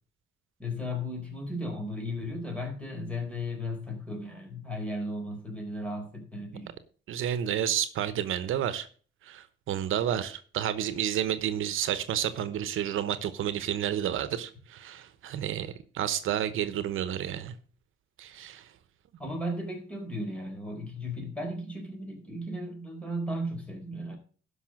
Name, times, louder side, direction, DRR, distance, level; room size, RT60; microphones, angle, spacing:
voice 1, 0.6-6.7 19.2-24.2, left 1 dB, 5° left, 4.3 m, -35 dB
voice 2, 7.1-8.9 9.2-17.5 18.2-18.7, right 10 dB, 80° right, 1.0 m, -30 dB
12.0 x 5.6 x 6.3 m
cardioid pair, 130°, 20 cm